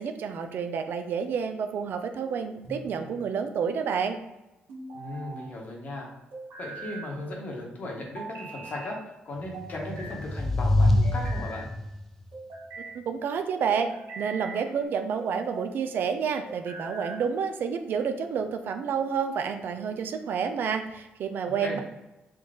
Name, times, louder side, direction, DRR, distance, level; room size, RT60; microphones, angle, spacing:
voice 1, 0.0-4.2 12.9-13.9 14.2-21.8, right 6 dB, 65° right, 7 dB, 0.4 m, -29 dB
sound 1, 2.6-3.3 4.7-5.5 6.3-7.1 8.2-8.9 9.5-10.2 10.8-11.7 12.3-13.0 13.7-14.7 15.2-15.7 16.5-17.3, right 3 dB, 80° right, 1.4 m, -41 dB
voice 2, 4.9-6.1 6.6-9.0 9.2-11.7 21.6-21.8, left 1 dB, 45° left, -1 dB, 1.1 m, -37 dB
sound 2, 9.7-12.0, left 1 dB, 5° left, 0.5 m, -25 dB
3.8 x 2.3 x 3.7 m, 0.99 s
cardioid pair, 105°, 4 cm